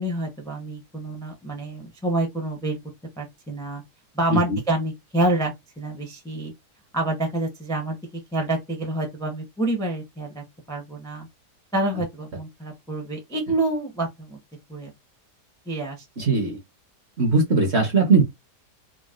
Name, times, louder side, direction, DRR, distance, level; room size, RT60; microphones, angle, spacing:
voice 1, 0.0-2.8 3.2-3.8 4.1-6.5 6.9-11.3 11.7-14.4 14.7-14.9 15.7-16.3, right 1 dB, 5° left, 0.4 m, -27 dB
voice 2, 16.2-16.6 17.2-18.2, right 3 dB, 50° right, 0.9 m, -19 dB
4.0 x 2.1 x 2.4 m
omnidirectional pair, 1.8 m